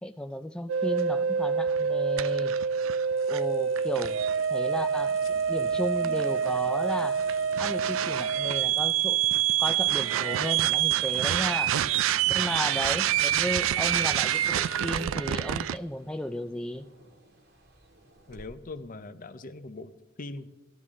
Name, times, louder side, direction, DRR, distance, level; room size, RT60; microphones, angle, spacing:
voice 1, 0.0-2.6 3.3-4.2 4.5-5.2 5.5-7.2 7.6-9.2 9.6-11.8 12.3-16.9, left 1 dB, 5° left, 7 dB, 0.3 m, -34 dB
sound 1, 0.7-15.8, right 8 dB, 90° right, 0.3 m, -26 dB
sound 2, 2.7-18.5, right 1 dB, 55° right, 1.8 m, -55 dB
sound 3, 3.2-15.2, left 8 dB, 90° left, 0.8 m, -50 dB
voice 2, 18.3-19.9 20.2-20.5, left 2 dB, 45° left, 11 dB, 0.7 m, -41 dB
15.5 x 12.0 x 3.7 m, 1.1 s
head